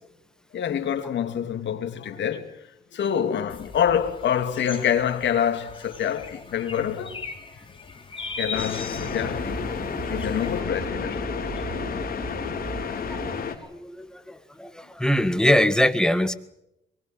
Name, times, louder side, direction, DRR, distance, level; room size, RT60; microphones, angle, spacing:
voice 1, 0.5-2.5 2.9-7.2 8.3-9.8 10.1-11.2 11.6-11.8, left 9 dB, 65° left, 2.9 m, -26 dB
sound 1, 3.5-10.6, left 4 dB, 25° left, 4.0 m, -39 dB
sound 2, 8.5-13.5, left 7 dB, 50° left, 4.4 m, -31 dB
sound 3, 8.9-13.4, right 3 dB, 45° right, 4.7 m, -36 dB
voice 2, 13.7-16.3, left 1 dB, 5° left, 1.8 m, -22 dB
23.5 x 21.5 x 7.9 m
cardioid pair, 90°, 20 cm